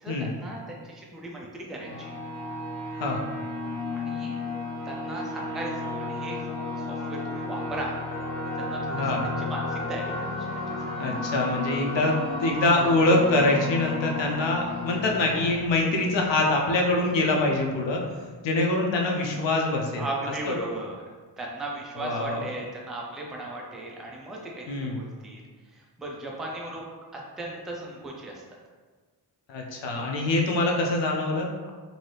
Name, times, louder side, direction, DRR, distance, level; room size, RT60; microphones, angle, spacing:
voice 1, 0.0-2.2 3.9-4.4 4.9-6.4 6.8-8.0 8.6-10.4 20.0-21.0 21.4-25.4 26.0-26.8 27.1-28.4, right 2 dB, ahead, -2 dB, 0.3 m, -36 dB
sound 1, 1.8-17.1, left 2 dB, 45° left, 1.5 m, -33 dB
voice 2, 8.9-9.2 11.0-18.0 18.4-20.1 20.5-20.6 22.0-22.5 24.7-25.0 29.5-31.5, left 2 dB, 85° left, 0 dB, 0.7 m, -24 dB
2.7 x 2.6 x 3.2 m, 1.4 s
wide cardioid pair, 110°, 43 cm